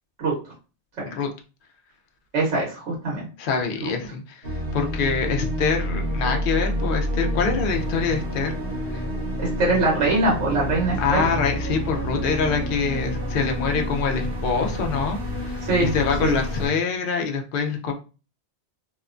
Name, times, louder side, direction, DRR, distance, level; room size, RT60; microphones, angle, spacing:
voice 1, 2.3-3.3 9.4-11.2 15.6-15.9 16.2-16.3, right 2 dB, 90° right, -4 dB, 1.2 m, -22 dB
voice 2, 3.4-8.6 8.9-9.0 11.0-17.9, left 5 dB, 60° left, 3 dB, 0.6 m, -25 dB
sound 1, 4.4-16.7, equal, 55° right, 0.9 m, -28 dB
2.8 x 2.1 x 2.4 m, 0.34 s
omnidirectional pair, 1.2 m